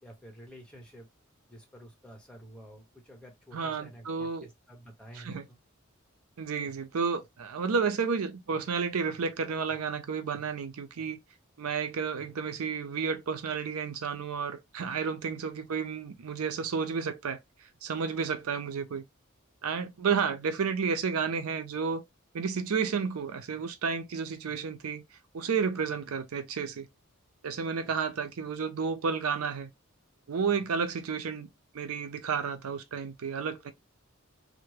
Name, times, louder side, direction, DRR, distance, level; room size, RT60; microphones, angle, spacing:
voice 1, 0.0-1.1 1.5-5.6 27.8-27.9, equal, 5° left, 1.1 m, -50 dB
voice 2, 3.5-4.5 5.1-5.5 6.4-11.2 11.6-17.4 17.8-19.0 19.6-22.0 22.3-25.0 25.3-26.9 27.4-29.7 30.3-31.5 31.7-33.7, right 5 dB, 90° right, 0.5 m, -31 dB
3.3 x 2.1 x 3.2 m
head